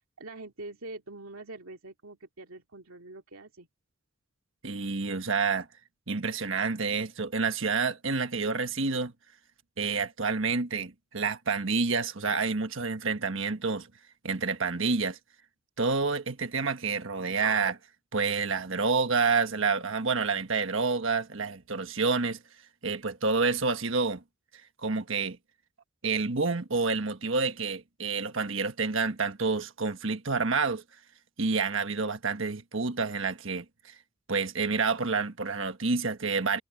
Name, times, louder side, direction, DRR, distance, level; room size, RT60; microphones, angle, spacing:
voice 1, 0.0-3.7, right 2 dB, 80° right, 2.3 m, -44 dB
voice 2, 4.6-5.7 6.1-9.1 9.8-13.9 14.2-15.2 15.8-17.8 18.1-22.4 22.8-24.2 24.8-25.4 26.0-30.8 31.4-34.0 34.3-36.6, right 4 dB, 65° right, 1.4 m, -28 dB
head